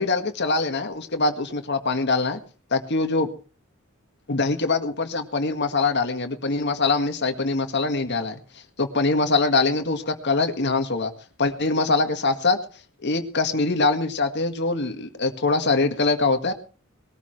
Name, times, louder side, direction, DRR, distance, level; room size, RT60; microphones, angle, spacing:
voice 1, 0.0-2.4 2.7-3.3 4.3-8.4 8.8-11.1 11.4-12.6 13.0-16.5, left 3 dB, 60° left, 7 dB, 1.8 m, -23 dB
21.0 x 13.5 x 3.2 m, 0.38 s
head